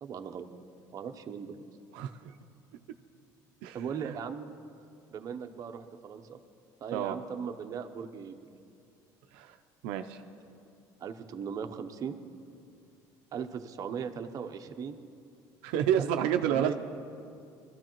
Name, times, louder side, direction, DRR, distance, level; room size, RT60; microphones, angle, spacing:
voice 1, 0.0-0.5 0.9-1.6 3.7-4.5 5.1-6.4 6.8-8.4 11.0-12.2 13.3-15.0 16.0-16.7, right 7 dB, 40° right, 6 dB, 0.8 m, -38 dB
voice 2, 1.9-2.3 3.6-4.2 6.9-7.2 9.3-9.6 9.8-10.2 15.6-16.7, right 10 dB, 80° right, 7 dB, 0.5 m, -30 dB
21.0 x 13.0 x 3.0 m, 2.5 s
cardioid pair, 115°, 9 cm